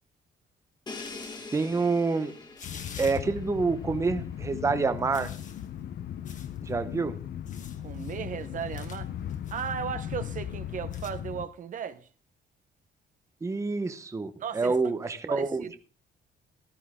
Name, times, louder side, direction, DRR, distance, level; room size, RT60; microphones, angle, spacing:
sound 1, 0.9-1.6 2.3-3.5 4.4-9.7 10.6-11.1, left 6 dB, 45° left, 1.8 m, -50 dB
Crash cymbal, 0.9-4.7, left 3 dB, 25° left, 1.9 m, -44 dB
voice 1, 1.5-2.3 3.0-5.3 6.6-7.2 13.4-15.8, right 4 dB, 15° right, 0.9 m, -27 dB
sound 2, 2.6-11.5, left 10 dB, 65° left, 0.9 m, -37 dB
voice 2, 7.8-9.1 9.5-12.1 14.4-14.8 15.3-15.8, right 7 dB, 50° right, 1.0 m, -36 dB
14.5 x 13.0 x 3.7 m
cardioid pair, 160°, 18 cm